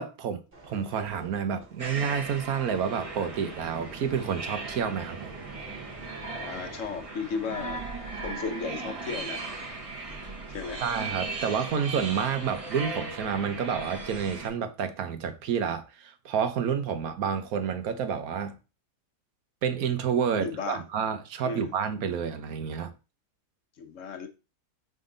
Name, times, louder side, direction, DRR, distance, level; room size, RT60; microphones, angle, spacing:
voice 1, 0.0-5.3 10.8-18.6 19.6-22.9, right 7 dB, 75° right, 1.3 m, -29 dB
sound 1, 0.5-11.4 12.0-12.2, right 2 dB, 40° right, 1.8 m, -50 dB
sound 2, 1.8-14.5, right 3 dB, 25° right, 1.2 m, -37 dB
voice 2, 6.3-7.8 8.2-9.4 10.0-10.8 20.4-20.8 21.4-21.7 23.8-24.3, left 5 dB, 60° left, 1.2 m, -35 dB
5.7 x 5.2 x 3.9 m
omnidirectional pair, 1.6 m